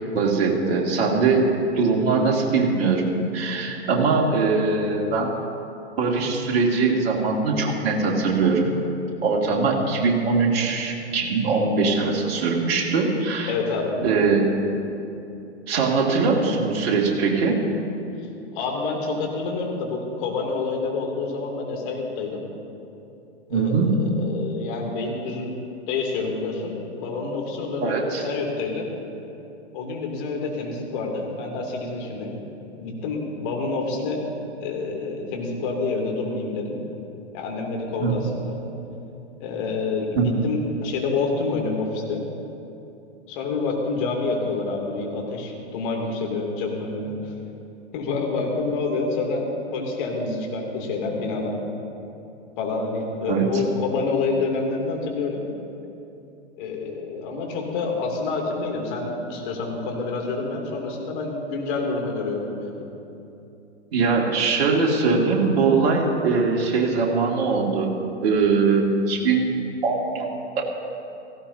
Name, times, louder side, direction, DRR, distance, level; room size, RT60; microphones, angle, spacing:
voice 1, 0.1-5.3 6.0-8.7 9.2-13.5 14.0-14.5 15.7-17.6 23.5-23.9 27.8-28.2 38.0-38.1 40.2-40.3 53.3-53.4 63.9-67.9 68.2-69.6 69.8-70.3 70.6-70.7, right 4 dB, 60° right, -1 dB, 2.5 m, -21 dB
voice 2, 13.5-13.9 18.5-22.4 23.5-25.6 25.9-28.9 29.7-32.4 32.8-34.2 34.6-36.8 37.3-38.6 39.4-42.2 43.3-47.3 47.9-49.5 49.7-51.6 52.6-55.4 56.6-62.7, left 3 dB, 45° left, 0 dB, 2.8 m, -28 dB
17.0 x 16.0 x 2.8 m, 2.8 s
hypercardioid pair, 110°, 35 cm